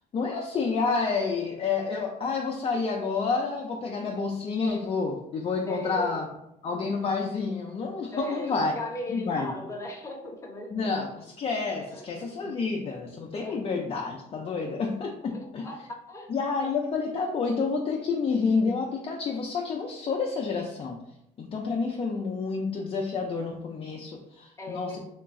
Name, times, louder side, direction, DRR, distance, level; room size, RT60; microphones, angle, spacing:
voice 1, 0.1-6.3 6.6-8.7 9.1-9.5 10.7-15.9 16.3-21.0 21.4-25.0, left 4 dB, 35° left, 0 dB, 0.4 m, -29 dB
voice 2, 5.7-6.2 8.1-11.0 12.4-12.5 13.4-13.6 15.6-15.8 16.1-16.3 24.6-25.0, left 1 dB, 15° left, -1 dB, 0.8 m, -37 dB
2.9 x 2.4 x 3.6 m, 0.82 s
cardioid pair, 110°, 17 cm